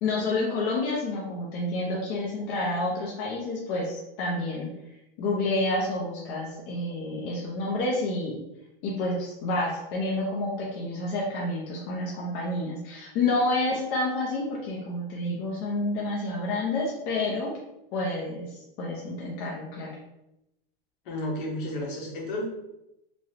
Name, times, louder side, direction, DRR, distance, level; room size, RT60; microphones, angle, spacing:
voice 1, 0.0-4.7 5.2-8.4 8.8-17.6 17.9-19.9, left 2 dB, 35° left, -4 dB, 0.6 m, -29 dB
voice 2, 21.0-22.4, left 1 dB, 60° left, -1 dB, 1.1 m, -32 dB
3.0 x 2.6 x 2.8 m, 0.88 s
supercardioid pair, 155°, 30 cm